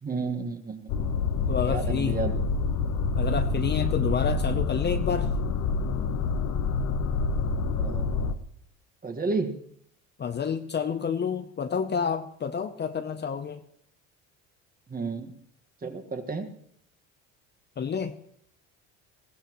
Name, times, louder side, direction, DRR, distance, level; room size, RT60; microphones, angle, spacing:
voice 1, 0.0-1.1 1.7-2.4 7.8-8.3 9.0-9.6 14.9-15.3 15.8-16.5, right 4 dB, 25° right, 6 dB, 1.7 m, -32 dB
sound 1, 0.9-8.3, left 4 dB, 60° left, 1.1 m, -27 dB
voice 2, 1.5-2.2 3.1-5.3 10.2-13.6 17.8-18.1, left 6 dB, 30° left, 8 dB, 0.8 m, -29 dB
21.5 x 15.5 x 3.1 m, 0.65 s
supercardioid pair, 100°, 35 cm